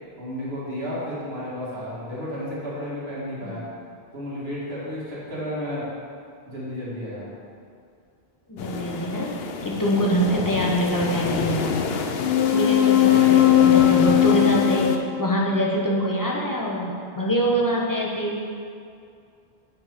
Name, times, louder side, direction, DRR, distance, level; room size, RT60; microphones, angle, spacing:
voice 1, 0.2-3.6 4.1-5.9 6.5-7.3, left 1 dB, 70° right, -7 dB, 2.3 m, -32 dB
voice 2, 8.5-9.3 9.6-11.8 12.5-14.9 15.2-18.4, right 1 dB, 20° left, -3 dB, 1.0 m, -24 dB
sound 1, 8.6-15.0, left 10 dB, 70° left, 0.8 m, -21 dB
9.3 x 4.7 x 5.1 m, 2.4 s
omnidirectional pair, 1.1 m